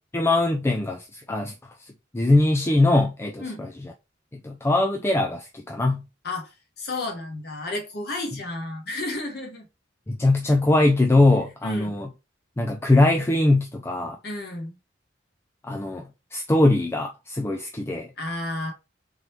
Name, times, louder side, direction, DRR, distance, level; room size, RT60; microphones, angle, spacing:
voice 1, 0.1-1.5 1.8-3.7 4.3-6.0 10.1-12.1 12.6-14.2 15.6-18.1, left 2 dB, 15° left, 0.3 m, -22 dB
voice 2, 6.2-9.7 11.6-12.0 14.2-14.8 18.2-18.7, left 2 dB, 60° left, 1.3 m, -32 dB
3.9 x 3.1 x 3.1 m
head